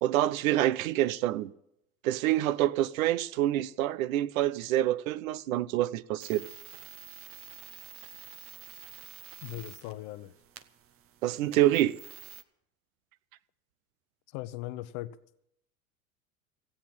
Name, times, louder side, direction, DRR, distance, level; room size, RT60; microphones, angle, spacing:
voice 1, 0.0-1.5 2.0-6.4 11.2-12.0, right 14 dB, 65° right, 0.7 m, -27 dB
sound 1, 6.2-12.4, right 10 dB, 30° right, 0.8 m, -49 dB
voice 2, 9.4-10.3 14.3-15.1, left 15 dB, 50° left, 0.8 m, -39 dB
15.5 x 8.6 x 7.5 m
hypercardioid pair, 85°, 45 cm